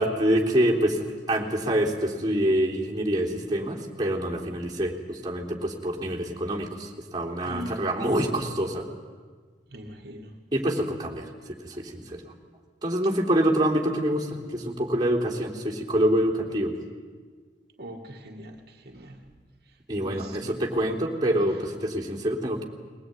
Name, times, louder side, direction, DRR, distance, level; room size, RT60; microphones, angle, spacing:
voice 1, 0.0-8.9 10.5-12.2 12.8-16.7 19.9-22.6, right 1 dB, 25° right, -3 dB, 3.5 m, -26 dB
voice 2, 7.4-7.8 9.7-10.3 17.8-19.2 19.7-19.8 20.0-20.6, equal, 60° right, 1 dB, 2.0 m, -41 dB
21.5 x 19.5 x 9.6 m, 1.5 s
head